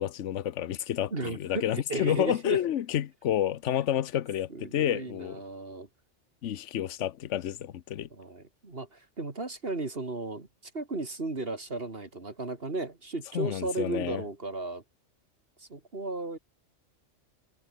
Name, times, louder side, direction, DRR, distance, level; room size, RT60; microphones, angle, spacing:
voice 1, 0.0-5.4 6.4-8.1 13.3-14.2, left 11 dB, 70° left, 1.1 m, -30 dB
voice 2, 1.1-2.6 4.5-5.9 8.1-10.5 10.7-14.8 15.6-16.4, right 2 dB, 50° right, 2.8 m, -35 dB
omnidirectional pair, 1.3 m